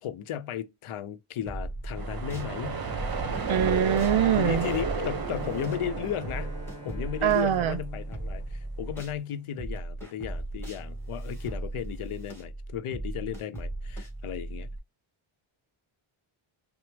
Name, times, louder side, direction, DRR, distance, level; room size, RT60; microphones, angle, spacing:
voice 1, 0.0-2.8 4.4-6.6 6.8-14.7, left 9 dB, 85° left, 0.7 m, -35 dB
sound 1, 1.5-2.5 2.9-9.2 9.6-14.8, right 1 dB, 5° left, 1.7 m, -37 dB
sound 2, 1.9-7.7, right 4 dB, 45° right, 0.9 m, -33 dB
voice 2, 3.5-4.7 7.2-7.8, right 10 dB, 70° right, 0.7 m, -23 dB
Bowed string instrument, 5.2-9.2, left 3 dB, 30° left, 1.0 m, -47 dB
5.9 x 2.0 x 3.4 m
wide cardioid pair, 120°, 50 cm